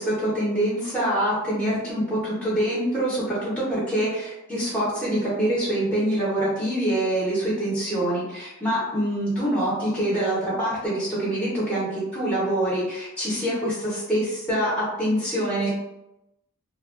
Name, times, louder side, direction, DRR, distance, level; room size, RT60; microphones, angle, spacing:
voice 1, 0.0-15.7, right 1 dB, 5° left, -7 dB, 0.8 m, -25 dB
2.9 x 2.3 x 2.4 m, 0.92 s
head